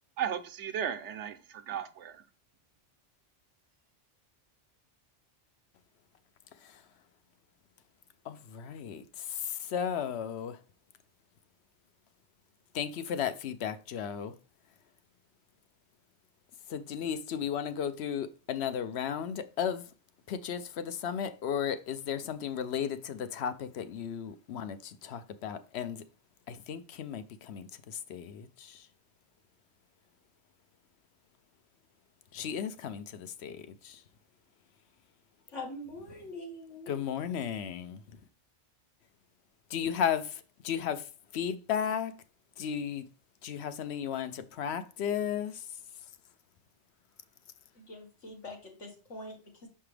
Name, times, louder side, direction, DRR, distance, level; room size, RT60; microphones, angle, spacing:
voice 1, 0.2-2.2, right 8 dB, 75° right, 1.0 m, -35 dB
voice 2, 6.6-6.9 8.2-10.6 12.7-14.4 16.7-19.9 20.3-26.0 26.5-28.9 32.3-34.0 36.9-38.2 39.7-42.2 42.6-43.1 43.4-45.8, left 8 dB, 70° left, 0.9 m, -35 dB
voice 3, 35.5-36.9 47.8-49.7, left 2 dB, 85° left, 2.2 m, -44 dB
5.8 x 5.5 x 3.3 m
omnidirectional pair, 1.2 m